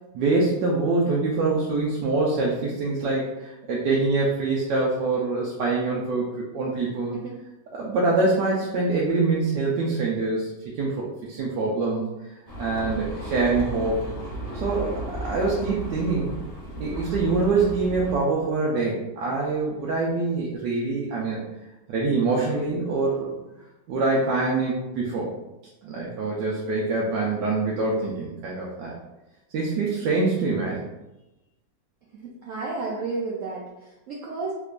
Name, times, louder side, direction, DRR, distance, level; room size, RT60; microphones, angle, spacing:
voice 1, 0.1-7.1 7.7-10.5 10.8-12.0 12.6-14.0 14.5-16.3 16.8-21.4 21.9-23.3 23.9-25.3 25.8-28.9 29.5-30.9, right 3 dB, 90° right, -4 dB, 1.2 m, -25 dB
sound 1, 12.5-18.1, right 1 dB, 70° left, 0.3 m, -34 dB
voice 2, 32.2-34.5, right 3 dB, 70° right, -3 dB, 0.7 m, -32 dB
3.5 x 3.0 x 2.4 m, 0.97 s
omnidirectional pair, 1.8 m